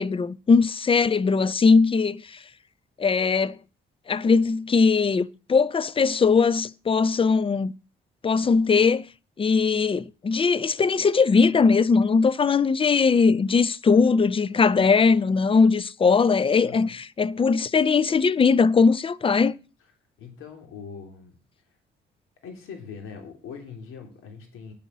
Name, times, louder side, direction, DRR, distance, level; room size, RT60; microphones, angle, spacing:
voice 1, 0.0-2.4 3.0-3.6 4.1-7.7 8.2-9.0 9.4-19.5, left 5 dB, 25° left, 0.5 m, -20 dB
voice 2, 16.6-16.9 20.2-21.4 22.4-24.7, left 6 dB, 80° left, 2.9 m, -41 dB
9.1 x 5.6 x 7.4 m
supercardioid pair, 75°, 21 cm